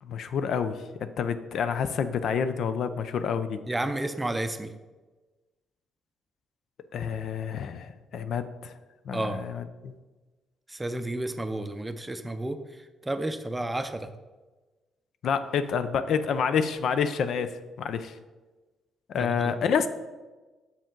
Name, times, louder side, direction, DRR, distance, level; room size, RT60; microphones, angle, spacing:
voice 1, 0.0-3.6 6.9-8.7 9.1-9.9 15.2-18.2 19.1-19.9, left 6 dB, 70° left, 11 dB, 0.4 m, -28 dB
voice 2, 3.7-4.7 9.1-9.4 10.7-12.6 13.0-14.1 19.2-19.6, right 1 dB, 15° right, 9 dB, 0.5 m, -31 dB
6.9 x 5.0 x 3.7 m, 1.2 s
cardioid pair, 90°, 0 cm